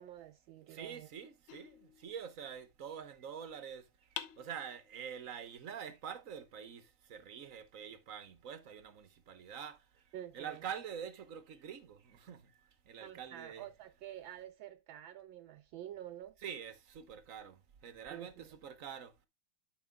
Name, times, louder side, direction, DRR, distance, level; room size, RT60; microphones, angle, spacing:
voice 1, 0.0-1.1 10.1-10.6 13.0-16.3 18.1-18.5, right 12 dB, 75° right, 1.3 m, -48 dB
voice 2, 0.7-3.8 4.4-6.8 7.1-9.8 10.3-12.4 12.9-13.7 16.4-19.1, right 8 dB, 50° right, 1.1 m, -46 dB
sound 1, 1.5-2.6 4.2-5.2, left 10 dB, 85° left, 1.8 m, -48 dB
11.5 x 6.5 x 2.2 m
omnidirectional pair, 2.3 m